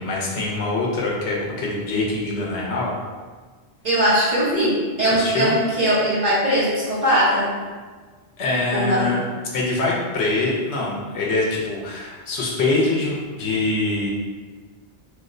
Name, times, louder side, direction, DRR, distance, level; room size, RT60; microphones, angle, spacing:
voice 1, 0.0-2.9 5.1-5.5 8.4-9.2 9.5-14.1, left 2 dB, 85° left, -3 dB, 1.0 m, -24 dB
voice 2, 3.8-7.5 8.7-9.0, right 1 dB, 40° right, -9 dB, 1.0 m, -20 dB
3.1 x 2.1 x 3.6 m, 1.4 s
omnidirectional pair, 1.1 m